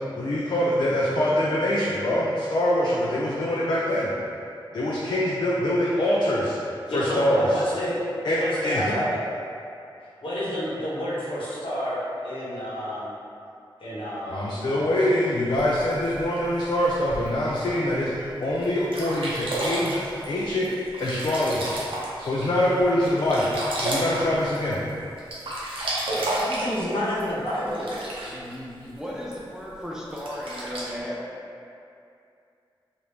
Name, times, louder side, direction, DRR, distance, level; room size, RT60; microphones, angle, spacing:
voice 1, 0.1-4.1 4.7-6.6 6.9-7.6 8.2-8.9 14.3-20.7 21.0-21.7 22.2-24.8, left 1 dB, 55° left, -6 dB, 0.4 m, -24 dB
voice 2, 6.9-8.0 8.3-9.1 10.2-13.1 13.8-14.6 26.1-29.0, equal, 75° left, -9 dB, 1.0 m, -30 dB
Sink (filling or washing), 15.5-17.5 18.1-18.2 18.6-18.7 18.9-22.4 22.8-24.9 25.2-28.5 29.3-29.4 30.1-30.9, right 1 dB, 75° right, 0.6 m, -31 dB
voice 3, 29.0-31.2, equal, 5° right, -6 dB, 0.5 m, -34 dB
2.9 x 2.5 x 3.4 m, 2.5 s
wide cardioid pair, 105°, 9 cm